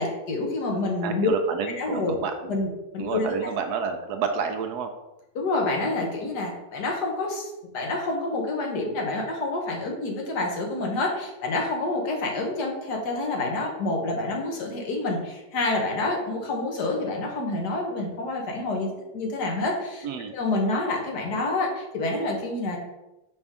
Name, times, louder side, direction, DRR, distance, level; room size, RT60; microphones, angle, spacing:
voice 1, 0.0-1.3 1.8-2.1 2.5-3.3 5.3-7.5 7.7-18.9 19.1-20.1 20.3-22.8, left 2 dB, 70° left, 0 dB, 1.7 m, -28 dB
voice 2, 1.0-2.6 3.0-4.9 20.0-20.3, right 6 dB, 70° right, 6 dB, 1.1 m, -30 dB
5.2 x 5.1 x 3.6 m, 0.97 s
omnidirectional pair, 1.8 m